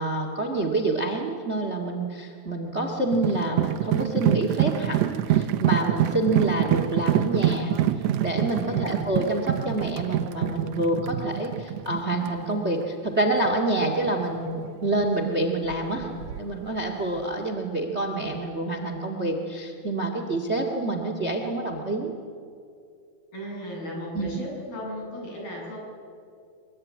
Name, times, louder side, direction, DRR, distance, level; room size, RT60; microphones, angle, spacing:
voice 1, 0.0-7.7 8.2-16.1 16.4-22.1 24.1-24.3, right 2 dB, 25° right, 5 dB, 1.6 m, -27 dB
sound 1, 3.1-13.1 13.5-13.6 13.8-15.1 15.5-16.7 16.9-17.2, right 12 dB, 85° right, 1.5 m, -26 dB
voice 2, 8.6-9.1 23.3-25.8, equal, 80° left, -2 dB, 10.0 m, -35 dB
24.0 x 22.5 x 9.6 m, 2.4 s
omnidirectional pair, 4.3 m